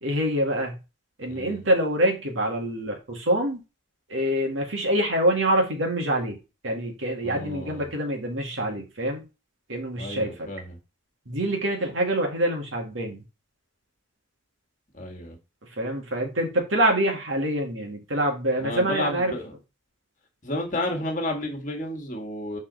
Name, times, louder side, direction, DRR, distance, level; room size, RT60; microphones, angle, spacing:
voice 1, 0.0-0.8 1.2-3.6 4.1-6.4 6.6-9.2 9.7-10.5 11.3-13.2 15.8-19.3, right 1 dB, 80° right, 2.0 m, -25 dB
voice 2, 1.3-1.6 7.2-7.9 10.0-10.8 14.9-15.4 18.6-19.5 20.4-22.6, left 1 dB, 40° left, 1.6 m, -31 dB
6.2 x 4.3 x 3.9 m
head